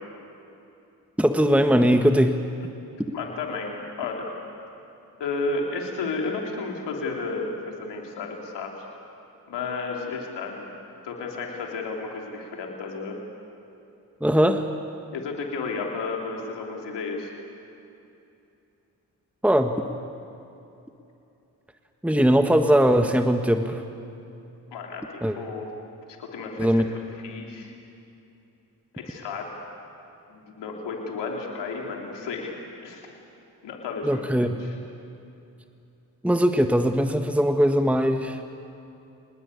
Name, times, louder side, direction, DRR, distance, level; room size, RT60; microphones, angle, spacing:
voice 1, 1.2-2.4 14.2-14.7 19.4-19.7 22.0-23.8 25.2-25.4 26.6-26.8 34.0-34.5 36.2-38.4, equal, 5° right, 6 dB, 1.6 m, -20 dB
voice 2, 3.1-4.3 5.2-7.5 7.8-8.8 9.5-10.7 11.0-13.2 15.1-17.3 24.7-25.7 26.2-26.8 27.1-27.7 28.9-29.5 30.3-32.6 32.8-33.1 33.6-34.7, left 4 dB, 85° left, 0 dB, 3.3 m, -32 dB
27.0 x 20.0 x 8.4 m, 2.8 s
supercardioid pair, 40°, 41 cm